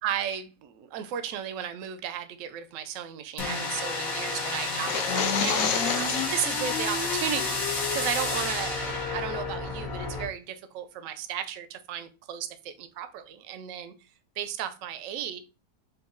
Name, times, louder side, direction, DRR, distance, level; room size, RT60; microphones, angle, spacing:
voice 1, 0.0-13.9 14.4-15.4, right 9 dB, 65° right, 0.8 m, -35 dB
sound 1, 3.4-10.3, left 3 dB, 60° left, 1.5 m, -30 dB
sound 2, 4.7-6.5, left 6 dB, 85° left, 1.2 m, -29 dB
4.5 x 2.6 x 3.7 m
omnidirectional pair, 1.7 m